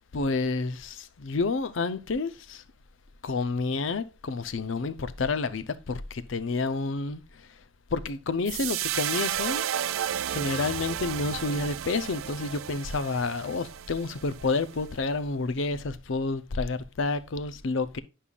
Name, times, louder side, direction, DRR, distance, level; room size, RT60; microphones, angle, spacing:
voice 1, 0.1-2.6 3.2-7.6 7.9-9.6 10.3-18.0, left 3 dB, 70° left, 0.6 m, -29 dB
sound 1, 8.5-14.9, right 11 dB, 80° right, 0.4 m, -33 dB
9.9 x 5.5 x 2.3 m
head